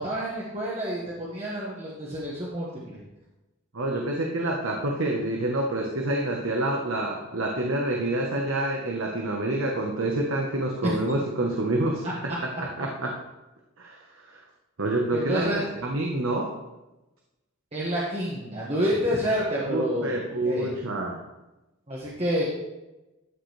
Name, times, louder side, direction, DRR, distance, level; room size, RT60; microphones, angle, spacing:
voice 1, 0.0-3.0 10.8-10.9 12.0-12.1 15.1-15.6 17.7-20.7 21.9-22.4, equal, 30° right, -6 dB, 1.6 m, -28 dB
voice 2, 3.7-12.0 12.6-13.1 13.8-14.4 14.8-16.5 19.6-21.2, right 1 dB, 80° right, 0 dB, 1.1 m, -27 dB
12.5 x 6.5 x 3.3 m, 1.0 s
head